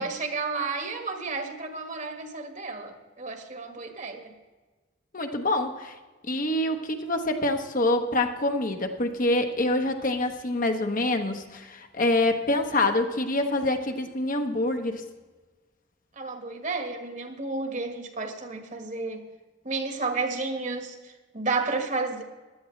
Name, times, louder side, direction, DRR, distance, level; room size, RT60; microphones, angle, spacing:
voice 1, 0.0-4.3 16.2-19.2 19.6-22.2, right 3 dB, 40° right, 5 dB, 1.5 m, -32 dB
voice 2, 5.1-5.9 6.3-15.0, left 2 dB, 45° left, 5 dB, 1.0 m, -26 dB
16.0 x 11.5 x 3.2 m, 1.3 s
head